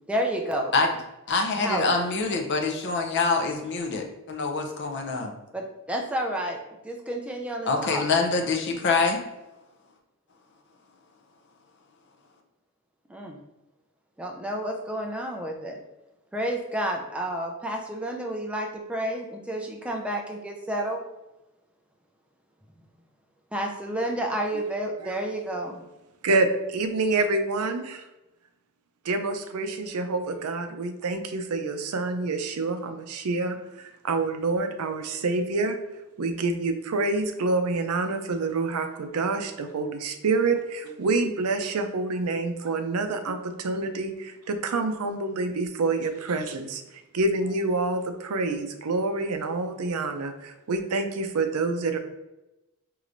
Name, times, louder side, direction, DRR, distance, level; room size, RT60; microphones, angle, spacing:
voice 1, 0.1-0.7 1.6-1.8 5.5-6.6 6.8-8.0 13.1-13.4 14.2-15.8 16.3-21.0 23.5-25.8, right 1 dB, 5° right, 1 dB, 0.4 m, -30 dB
voice 2, 1.3-5.3 7.7-9.2, left 4 dB, 50° left, 3 dB, 0.6 m, -25 dB
voice 3, 26.2-28.0 29.0-35.8 36.2-52.0, right 3 dB, 90° right, 7 dB, 0.5 m, -27 dB
4.8 x 3.0 x 2.6 m, 1.0 s
head